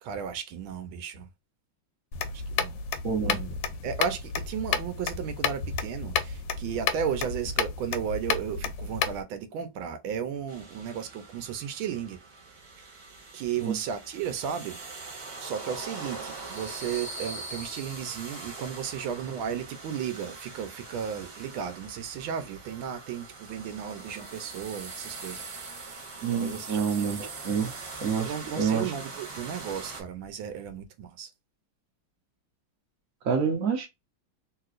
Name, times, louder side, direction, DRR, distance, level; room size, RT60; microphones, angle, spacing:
voice 1, 0.0-1.3 2.3-2.8 3.2-12.2 13.3-14.8 15.4-25.4 26.3-27.1 28.2-31.3, right 8 dB, 85° right, 1.4 m, -34 dB
sound 1, 2.1-9.2, left 6 dB, 75° left, 1.3 m, -31 dB
voice 2, 3.0-3.4 13.6-13.7 26.2-27.7 28.0-28.9 33.2-33.9, right 6 dB, 60° right, 0.9 m, -27 dB
sound 2, 10.5-30.0, right 3 dB, 40° right, 1.3 m, -42 dB
3.2 x 2.9 x 2.4 m
omnidirectional pair, 2.2 m